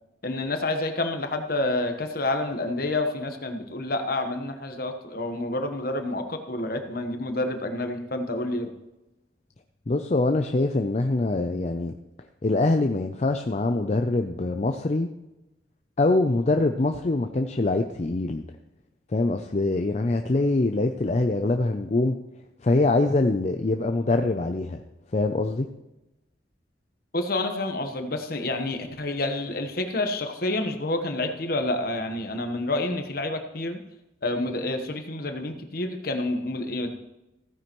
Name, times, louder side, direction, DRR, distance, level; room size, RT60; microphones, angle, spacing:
voice 1, 0.2-8.7 27.1-33.8 34.2-36.9, left 2 dB, 50° left, 6 dB, 1.2 m, -28 dB
voice 2, 9.9-11.9 12.4-15.1 16.0-18.4 19.1-22.1 22.6-24.8 25.1-25.7, left 2 dB, 35° left, 6 dB, 0.5 m, -24 dB
15.5 x 9.6 x 3.1 m, 0.95 s
head